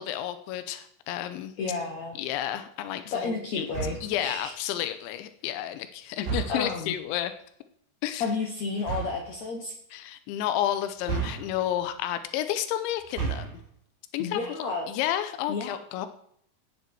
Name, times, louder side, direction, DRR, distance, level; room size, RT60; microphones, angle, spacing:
voice 1, 0.0-1.5 2.2-3.7 4.0-7.3 8.0-8.2 9.9-13.6 14.1-14.4 14.9-16.1, left 12 dB, 90° left, 10 dB, 3.1 m, -31 dB
voice 2, 1.6-2.2 3.1-4.5 6.5-7.0 8.2-9.7 14.2-14.9 15.5-15.8, left 4 dB, 70° left, 2 dB, 1.7 m, -31 dB
sound 1, 3.7-4.2 6.2-6.8 8.8-9.3 11.0-11.8 13.0-13.7, right 6 dB, 65° right, 5.2 m, -33 dB
15.0 x 9.4 x 4.7 m, 0.68 s
omnidirectional pair, 5.2 m